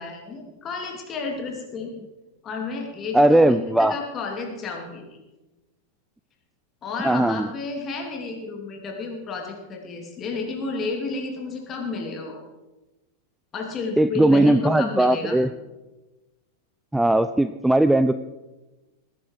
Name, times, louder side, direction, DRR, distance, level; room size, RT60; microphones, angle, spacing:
voice 1, 0.0-1.9 2.4-5.0 6.8-12.4 13.5-15.4, left 4 dB, 25° left, 2 dB, 3.1 m, -31 dB
voice 2, 3.1-4.0 7.0-7.5 14.0-15.5 16.9-18.1, right 1 dB, 5° right, 12 dB, 0.4 m, -18 dB
19.5 x 10.0 x 4.8 m, 1.1 s
figure-of-eight pair, 90°, 0 cm